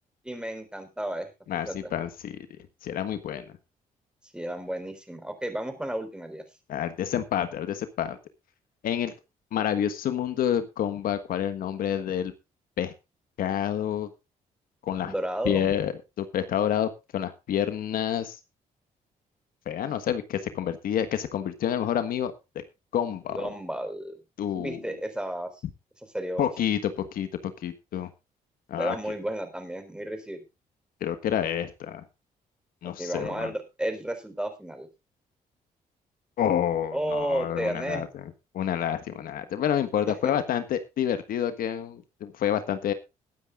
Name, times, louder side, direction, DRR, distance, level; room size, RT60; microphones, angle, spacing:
voice 1, 0.2-1.3 1.6-1.8 4.3-6.4 15.1-15.7 23.3-24.2 24.5-25.5 26.1-26.5 28.8-30.4 33.0-34.9 36.9-38.1 40.1-40.3, right 1 dB, 5° right, 7 dB, 4.5 m, -32 dB
voice 2, 1.5-2.5 2.8-3.4 6.7-8.2 8.8-9.1 9.5-12.3 12.8-12.9 13.4-14.1 14.8-15.1 15.4-18.4 19.6-22.3 22.9-23.5 24.4-24.8 26.4-27.3 27.6-28.1 28.7-29.0 31.0-32.0 32.8-33.5 36.4-38.2 38.5-42.9, left 9 dB, 75° left, 10 dB, 1.5 m, -28 dB
21.0 x 9.6 x 2.5 m, 0.26 s
cardioid pair, 95°, 15 cm